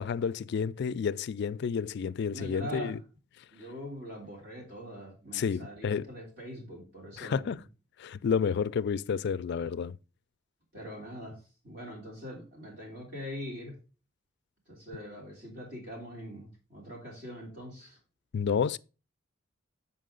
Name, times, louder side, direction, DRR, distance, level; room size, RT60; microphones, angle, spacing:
voice 1, 0.0-3.0 5.3-6.0 7.2-7.6 8.0-10.0 18.3-18.8, left 6 dB, 60° left, 0.3 m, -30 dB
voice 2, 2.3-3.0 3.5-7.5 10.7-11.4 11.6-13.8 14.7-18.0, equal, 55° right, 3.2 m, -43 dB
7.5 x 5.5 x 3.8 m
head